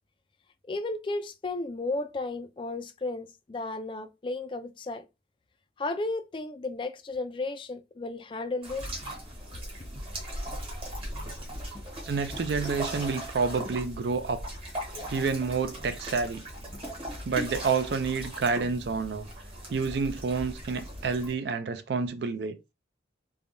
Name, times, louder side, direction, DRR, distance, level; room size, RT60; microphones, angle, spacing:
voice 1, 0.7-5.0 5.8-9.0, left 2 dB, 25° left, 0.3 m, -34 dB
sound 1, 8.6-21.3, equal, 30° right, 1.0 m, -38 dB
voice 2, 12.1-14.4 15.1-16.4 17.2-19.3 19.7-22.6, right 5 dB, 60° right, 0.4 m, -29 dB
3.4 x 2.2 x 2.5 m
head